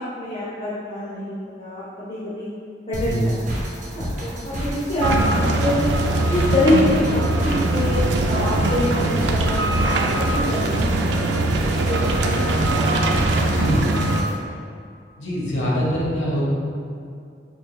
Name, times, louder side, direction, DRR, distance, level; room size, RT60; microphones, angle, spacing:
voice 1, 0.0-2.5 2.9-3.4 3.9-5.9 6.3-10.1 10.3-11.6 11.9-12.8, left 1 dB, 35° left, -9 dB, 0.6 m, -25 dB
sound 1, 2.9-14.3, equal, 40° right, 0.7 m, -30 dB
sound 2, 5.0-14.2, right 2 dB, 75° right, 0.3 m, -21 dB
voice 2, 13.5-13.9 15.2-16.5, equal, 90° left, -5 dB, 1.0 m, -23 dB
4.5 x 3.2 x 2.3 m, 2.4 s
head